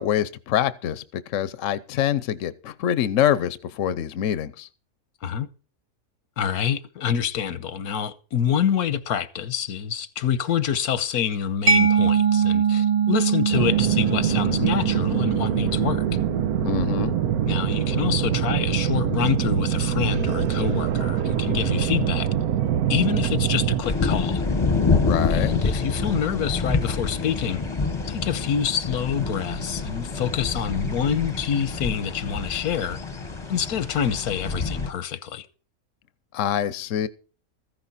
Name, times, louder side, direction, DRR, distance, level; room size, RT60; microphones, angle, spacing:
voice 1, 0.0-4.7 16.6-17.2 24.9-25.5 36.3-37.1, left 10 dB, 65° left, 1.0 m, -25 dB
voice 2, 6.4-16.2 17.5-22.3 22.9-24.4 25.3-27.6 28.1-33.0 33.5-35.5, left 8 dB, 90° left, 1.4 m, -26 dB
Mallet percussion, 11.7-19.1, right 7 dB, 30° right, 0.7 m, -24 dB
sound 1, 13.5-23.8, right 9 dB, 85° right, 1.3 m, -24 dB
sound 2, 23.8-34.9, left 4 dB, 20° left, 1.0 m, -27 dB
14.5 x 10.5 x 4.1 m
omnidirectional pair, 1.5 m